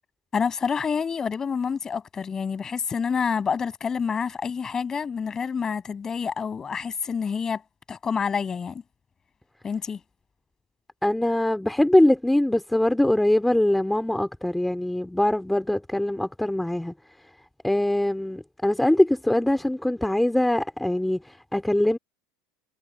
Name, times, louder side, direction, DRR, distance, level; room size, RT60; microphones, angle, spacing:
voice 1, 0.3-7.6 7.9-8.8 9.6-10.0, left 6 dB, 25° left, 7.0 m, -28 dB
voice 2, 11.0-16.9 17.6-22.0, left 1 dB, 5° left, 2.7 m, -22 dB
supercardioid pair, 100°, 2 cm